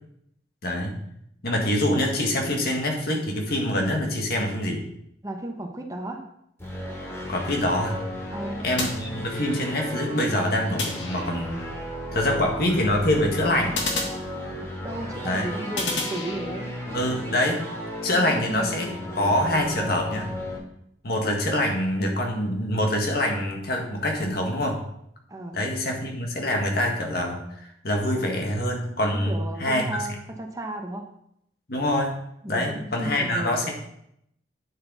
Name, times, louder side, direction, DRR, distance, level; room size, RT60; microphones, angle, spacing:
voice 1, 0.6-1.0 1.4-4.8 7.3-8.0 8.6-11.7 12.1-13.8 15.2-15.5 16.9-17.7 18.0-20.4 21.0-24.8 25.5-30.1 31.7-32.1 32.5-33.7, left 1 dB, 55° left, 1 dB, 1.9 m, -25 dB
voice 2, 5.2-6.3 8.3-8.7 14.8-16.8 18.5-18.9 25.3-25.7 29.2-31.1 32.4-33.7, right 1 dB, 20° right, 3 dB, 0.9 m, -34 dB
sound 1, 6.6-20.6, left 1 dB, 15° left, 2.6 m, -35 dB
sound 2, 8.8-9.7 10.8-11.7 13.7-14.9 15.8-16.8, left 3 dB, 80° left, 1.7 m, -32 dB
9.1 x 7.6 x 4.1 m, 0.74 s
head